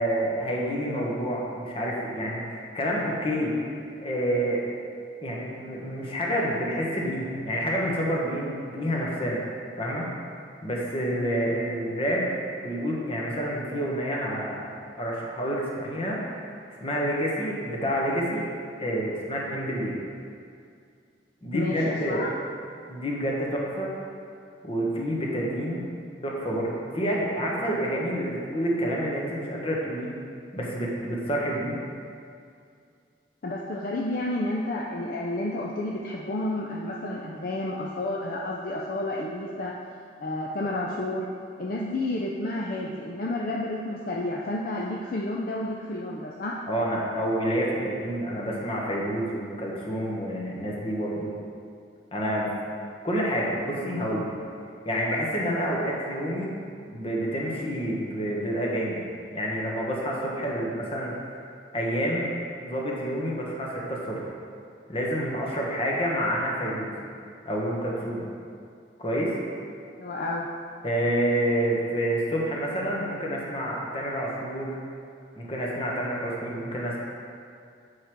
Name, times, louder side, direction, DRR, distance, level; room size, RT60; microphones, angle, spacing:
voice 1, 0.0-3.7 4.0-4.6 5.2-9.4 9.8-10.1 10.6-12.3 12.6-14.7 15.0-16.2 16.7-18.5 18.8-20.0 21.4-22.3 22.9-23.9 24.6-25.9 26.2-30.1 30.5-31.8 46.7-51.3 52.1-52.5 53.0-54.3 54.8-56.5 56.9-59.0 59.3-61.1 61.7-62.3 62.6-64.2 64.9-66.9 67.4-68.2 69.0-69.4 70.8-74.8 75.4-77.0, equal, 30° left, -3 dB, 1.3 m, -28 dB
voice 2, 21.5-22.3 33.4-39.7 40.2-41.3 41.6-46.6 70.0-70.5, left 1 dB, 55° left, -2 dB, 0.5 m, -30 dB
8.0 x 4.9 x 4.6 m, 2.4 s
head